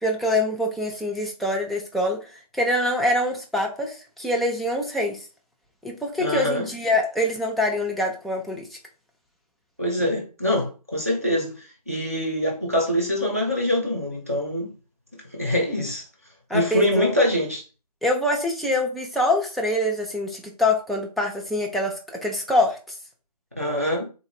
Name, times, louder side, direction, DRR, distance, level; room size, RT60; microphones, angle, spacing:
voice 1, 0.0-2.2 2.5-5.2 5.8-8.6 16.5-17.2 18.0-22.8, left 1 dB, ahead, 0.4 m, -24 dB
voice 2, 6.2-6.6 9.8-14.7 15.3-16.0 16.5-17.6 23.6-24.1, left 1 dB, 20° right, 0.8 m, -24 dB
3.4 x 2.6 x 3.5 m
figure-of-eight pair, 180°, 21 cm